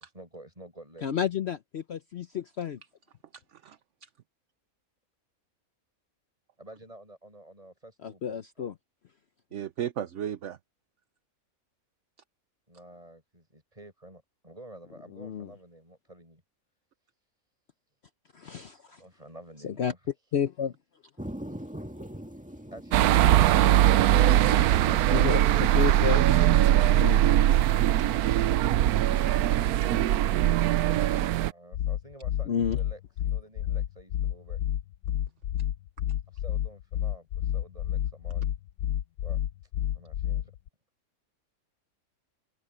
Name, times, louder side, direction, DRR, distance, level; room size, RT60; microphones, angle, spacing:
voice 1, 0.1-1.1 6.6-8.7 12.7-16.4 18.9-20.1 31.3-34.6 36.3-38.6 39.2-39.4 39.9-40.5, right 1 dB, 25° right, 8.0 m, -50 dB
voice 2, 1.0-2.8 8.0-8.7 15.2-15.5 18.3-18.8 19.6-19.9 20.3-20.7 25.1-26.2 26.7-27.2 32.5-32.8, left 8 dB, 55° left, 0.9 m, -31 dB
voice 3, 3.3-4.1 9.5-10.6, right 10 dB, 60° right, 1.1 m, -36 dB
sound 1, 21.2-27.8, equal, 5° right, 1.9 m, -43 dB
sound 2, 22.9-31.5, right 13 dB, 90° right, 1.1 m, -21 dB
sound 3, 31.7-40.7, left 11 dB, 80° left, 1.1 m, -30 dB
omnidirectional pair, 1.5 m